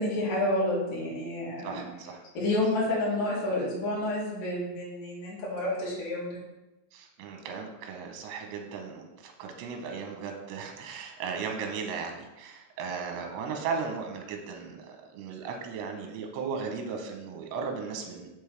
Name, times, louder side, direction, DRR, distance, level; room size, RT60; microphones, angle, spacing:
voice 1, 0.0-1.7 2.4-6.4, left 1 dB, 55° left, -7 dB, 3.5 m, -29 dB
voice 2, 1.6-2.2 6.9-18.3, right 5 dB, 80° right, 3 dB, 3.1 m, -36 dB
7.1 x 5.4 x 3.3 m, 1.0 s
omnidirectional pair, 5.1 m